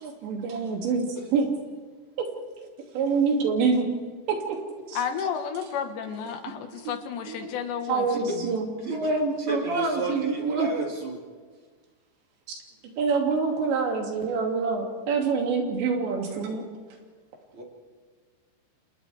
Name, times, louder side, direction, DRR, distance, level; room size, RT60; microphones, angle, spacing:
voice 1, 0.0-1.1 1.3-1.5 2.9-3.8 4.3-4.4 4.9-5.0 7.3-7.5 7.9-10.7 13.0-16.6, right 4 dB, 85° right, 1 dB, 4.9 m, -26 dB
voice 2, 4.9-8.6, left 7 dB, 80° left, 6 dB, 3.7 m, -32 dB
voice 3, 8.8-9.1 9.4-11.2 16.3-16.4 17.5-17.6, right 3 dB, 35° right, -1 dB, 3.0 m, -32 dB
29.0 x 28.5 x 3.5 m, 1.5 s
omnidirectional pair, 5.0 m